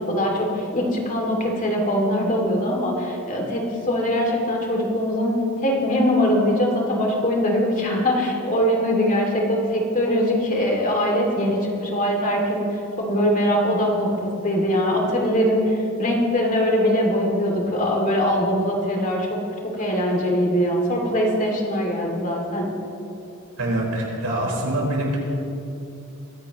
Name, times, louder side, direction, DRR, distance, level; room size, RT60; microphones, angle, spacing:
voice 1, 0.0-5.3 5.6-12.7 13.0-15.7 16.0-19.4 19.6-22.7, equal, 35° left, 0 dB, 2.4 m, -22 dB
voice 2, 23.6-25.2, right 1 dB, 80° right, -3 dB, 4.3 m, -24 dB
23.0 x 15.5 x 3.0 m, 2.7 s
head